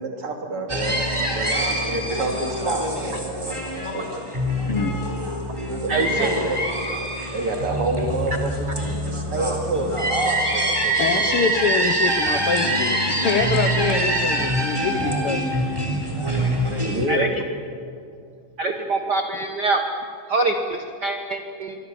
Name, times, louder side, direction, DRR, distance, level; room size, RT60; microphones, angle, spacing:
voice 1, 0.0-4.1 5.8-6.6 7.0-8.7 9.1-11.5 16.8-17.3, right 2 dB, 40° right, 2 dB, 3.4 m, -28 dB
sound 1, 0.7-17.1, right 1 dB, 10° right, 3.3 m, -24 dB
voice 2, 4.6-5.0 11.0-15.5, left 6 dB, 75° left, 6 dB, 1.3 m, -25 dB
voice 3, 5.9-6.3 17.1-17.3 18.6-19.8 20.3-21.8, right 3 dB, 80° right, 5 dB, 0.9 m, -24 dB
27.0 x 23.0 x 7.1 m, 2.5 s
omnidirectional pair, 3.9 m